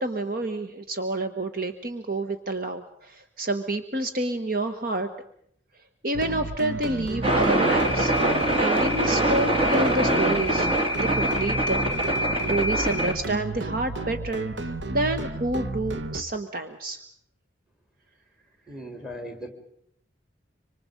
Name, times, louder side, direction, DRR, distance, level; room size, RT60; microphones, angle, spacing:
voice 1, 0.0-5.1 6.0-8.1 8.6-11.8 12.1-12.2 12.5-17.0, right 2 dB, 50° right, 8 dB, 1.2 m, -29 dB
sound 1, 6.1-16.2, right 2 dB, 70° right, 1.1 m, -33 dB
sound 2, 7.2-13.1, right 1 dB, 30° right, 2.6 m, -23 dB
voice 2, 18.7-19.5, equal, 5° right, 5 dB, 3.4 m, -38 dB
26.5 x 25.0 x 5.3 m, 0.68 s
head